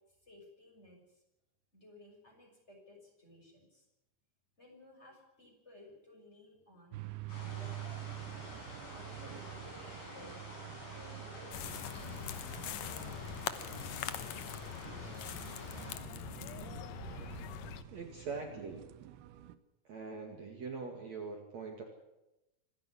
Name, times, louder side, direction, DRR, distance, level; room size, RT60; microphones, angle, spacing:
voice 1, 0.1-1.2 1.7-3.9 4.6-7.0 7.5-8.4 8.9-10.3 10.9-13.2, left 1 dB, 15° left, -1 dB, 6.7 m, -58 dB
sound 1, 6.9-19.6, right 14 dB, 85° right, 3.0 m, -48 dB
sound 2, 7.3-16.0, left 1 dB, 50° left, 8.9 m, -49 dB
sound 3, 11.5-17.8, left 10 dB, 70° left, 1.6 m, -42 dB
voice 2, 17.9-18.9 19.8-21.8, right 4 dB, 50° right, 2 dB, 3.1 m, -42 dB
26.5 x 11.0 x 10.0 m, 0.96 s
omnidirectional pair, 4.5 m